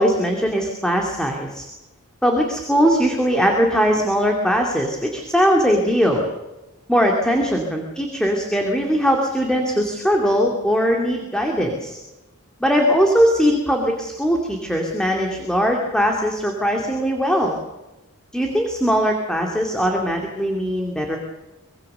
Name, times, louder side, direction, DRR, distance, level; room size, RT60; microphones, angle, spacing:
voice 1, 0.0-1.7 2.2-6.3 6.9-12.0 12.6-17.6 18.3-21.2, equal, 5° left, 1 dB, 2.4 m, -20 dB
25.0 x 21.0 x 6.8 m, 1.0 s
head